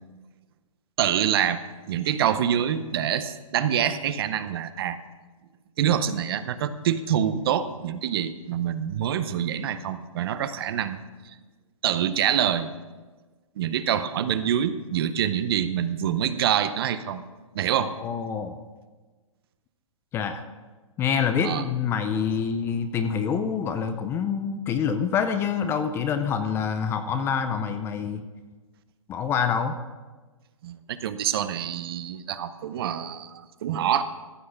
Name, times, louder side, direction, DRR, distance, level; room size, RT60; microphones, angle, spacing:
voice 1, 1.0-1.6 1.9-5.0 5.8-11.0 11.8-12.7 13.6-17.2 17.5-17.9 21.4-21.6 30.6-34.0, right 9 dB, 45° right, 13 dB, 0.7 m, -26 dB
voice 2, 17.8-18.6 20.1-20.4 21.0-28.2 29.1-29.8, left 7 dB, 15° left, 9 dB, 0.5 m, -26 dB
14.5 x 6.4 x 5.8 m, 1.3 s
hypercardioid pair, 145°, 18 cm